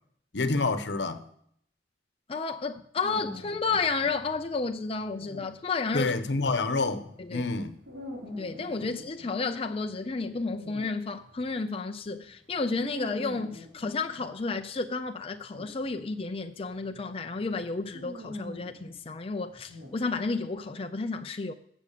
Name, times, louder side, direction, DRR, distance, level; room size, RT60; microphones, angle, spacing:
voice 1, 0.3-1.2 5.9-7.0 7.3-7.7, left 3 dB, 75° left, 1.0 m, -27 dB
voice 2, 2.3-6.1 7.2-7.5 8.4-21.5, left 4 dB, 35° left, 0.5 m, -32 dB
sound 1, 3.0-11.6 12.1-20.6, left 1 dB, 80° right, 3.8 m, -45 dB
15.5 x 6.3 x 6.7 m
head